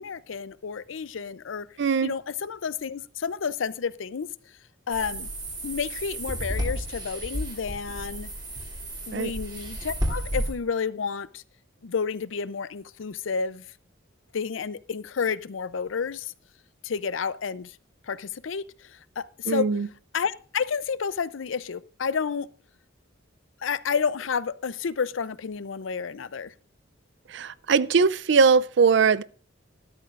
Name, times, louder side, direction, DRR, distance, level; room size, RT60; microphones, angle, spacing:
voice 1, 0.0-1.7 2.0-4.5 4.9-5.3 5.6-8.3 9.1-11.4 11.8-13.6 14.3-16.3 16.8-17.8 18.0-19.7 20.1-22.5 23.6-26.5, left 6 dB, 80° left, 0.5 m, -30 dB
voice 2, 1.8-2.1 9.1-9.3 19.5-19.9 27.3-29.2, right 5 dB, 65° right, 0.5 m, -21 dB
sound 1, 4.9-10.5, equal, 20° right, 2.8 m, -32 dB
13.5 x 12.5 x 2.5 m
head